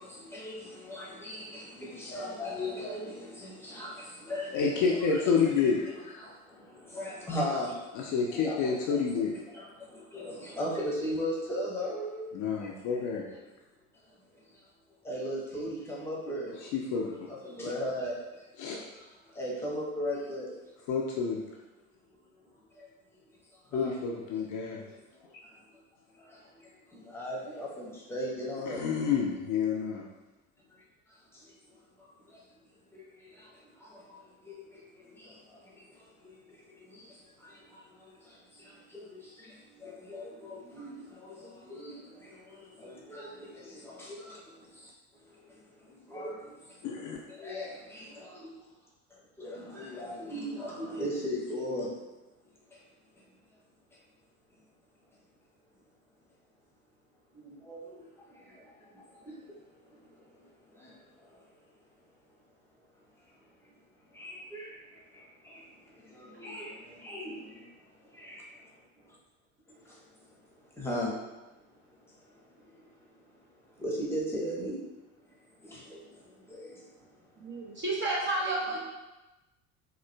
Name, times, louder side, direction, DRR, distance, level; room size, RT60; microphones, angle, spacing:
voice 1, 0.0-5.2 6.2-7.9 8.3-9.2 9.5-12.3 14.3-14.6 15.0-16.7 17.4-18.5 18.9-20.5 22.5-22.9 23.7-23.9 24.8-25.8 26.1-28.8 31.3-32.4 32.9-44.1 45.3-46.9 47.3-48.4 49.4-51.9 52.7-52.8 57.3-61.5 64.1-68.4 69.8-71.1 71.9-73.1 73.4-74.8 75.2-77.1 78.7-78.8, equal, 5° left, -4 dB, 0.9 m, -39 dB
voice 2, 4.5-6.2 7.9-9.3 12.3-13.2 16.6-17.3 18.6-18.8 20.9-21.4 23.7-24.8 28.7-30.0 46.8-47.2, left 5 dB, 45° left, -1 dB, 0.5 m, -29 dB
voice 3, 77.4-78.8, right 2 dB, 25° right, -3 dB, 0.7 m, -31 dB
3.8 x 2.4 x 2.2 m, 1.1 s
figure-of-eight pair, 65°, 43 cm